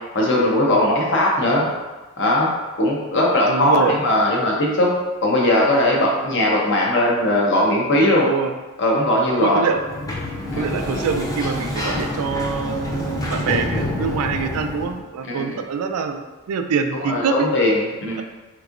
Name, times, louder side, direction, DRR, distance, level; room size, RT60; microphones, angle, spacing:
voice 1, 0.1-1.6 2.2-2.5 2.8-4.9 5.2-8.3 8.8-9.6 10.5-10.6 15.4-15.5 17.0-18.2, left 1 dB, 55° left, -2 dB, 0.7 m, -19 dB
voice 2, 3.5-4.0 8.2-8.5 9.4-9.8 10.6-16.2 16.5-17.5, right 6 dB, 80° right, 7 dB, 0.3 m, -24 dB
Sliding door, 9.7-15.0, left 1 dB, 15° left, 0.3 m, -27 dB
3.5 x 3.0 x 2.5 m, 1.2 s
head